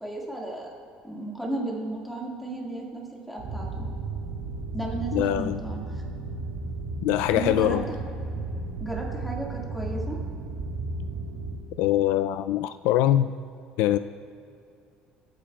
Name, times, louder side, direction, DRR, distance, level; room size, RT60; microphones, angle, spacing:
voice 1, 0.0-0.7 1.0-3.8 4.7-6.0 7.3-7.8 8.8-10.2, right 2 dB, ahead, -4 dB, 1.9 m, -34 dB
sound 1, 3.4-11.5, right 3 dB, 65° right, 2.6 m, -34 dB
voice 2, 5.1-5.6 7.0-7.8 11.8-13.3 13.8-14.0, left 12 dB, 75° left, 12 dB, 0.3 m, -23 dB
25.5 x 8.5 x 2.3 m, 2.5 s
cardioid pair, 170°, 3 cm